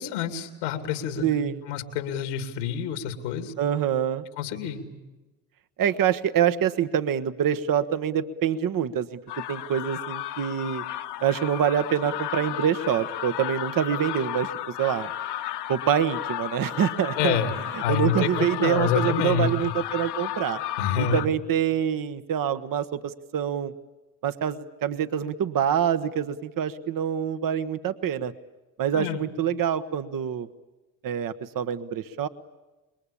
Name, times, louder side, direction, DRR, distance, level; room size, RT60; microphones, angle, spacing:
voice 1, 0.0-1.3 1.7-3.5 4.4-4.8 17.2-17.5 17.8-19.7 20.8-21.2 28.9-29.2, left 8 dB, 90° left, 6 dB, 2.6 m, -27 dB
voice 2, 1.2-1.6 3.6-4.2 5.8-9.2 9.5-10.8 11.2-14.5 14.8-15.1 15.7-17.4 17.7-20.6 21.0-23.7 24.2-28.3 28.8-30.5 31.0-32.3, right 9 dB, 50° right, 11 dB, 1.2 m, -25 dB
sound 1, 9.3-21.3, left 13 dB, 65° left, 1.4 m, -33 dB
27.0 x 22.0 x 8.6 m, 1.1 s
supercardioid pair, 70°, 43 cm